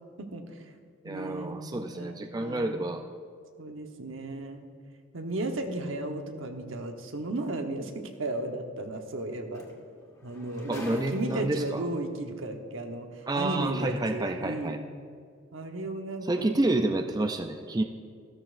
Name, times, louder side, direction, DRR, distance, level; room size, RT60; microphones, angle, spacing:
voice 1, 0.2-0.6 1.0-2.8 3.6-4.6 5.1-9.6 10.2-14.7 15.5-16.6, right 2 dB, 75° right, 4 dB, 1.1 m, -35 dB
voice 2, 1.0-3.0 5.6-5.9 10.7-11.8 13.3-14.8 16.2-17.8, right 2 dB, 20° right, 5 dB, 0.4 m, -29 dB
sound 1, 7.4-7.5 9.2-9.3 9.5-11.8 12.7-12.8, left 1 dB, 20° left, 1.6 m, -45 dB
14.0 x 13.0 x 2.6 m, 2.1 s
head